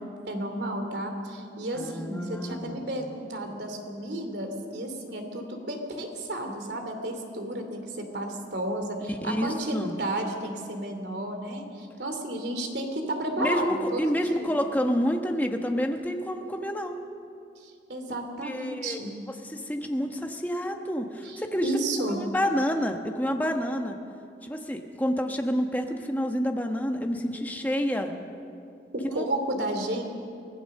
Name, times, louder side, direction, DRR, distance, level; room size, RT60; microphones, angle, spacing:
voice 1, 0.3-14.5 17.6-19.1 21.2-22.2 28.9-30.0, right 1 dB, 80° right, 5 dB, 2.7 m, -32 dB
voice 2, 1.7-2.9 9.1-9.9 13.4-17.0 18.4-19.0 19.4-21.7 22.1-23.9 24.4-28.1 29.0-29.3, equal, 10° left, 3 dB, 1.2 m, -28 dB
24.0 x 16.5 x 6.6 m, 2.6 s
head